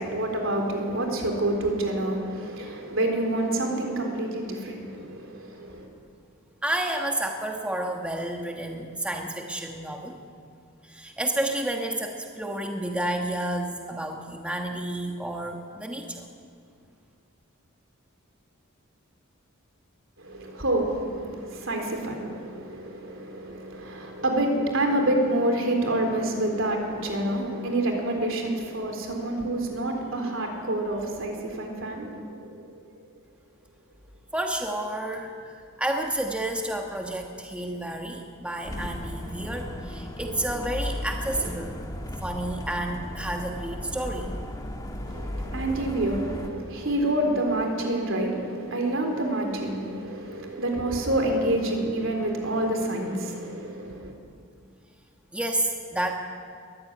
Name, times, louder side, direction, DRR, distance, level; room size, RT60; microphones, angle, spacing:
voice 1, 0.0-5.9 20.2-32.7 45.1-54.1, right 1 dB, 65° right, 3 dB, 3.9 m, -28 dB
voice 2, 6.6-10.2 10.8-16.3 34.3-44.3 55.3-56.1, right 1 dB, 5° right, 2 dB, 1.4 m, -30 dB
sound 1, 38.6-46.5, left 1 dB, 20° left, 1.6 m, -35 dB
22.0 x 14.5 x 9.8 m, 2.3 s
head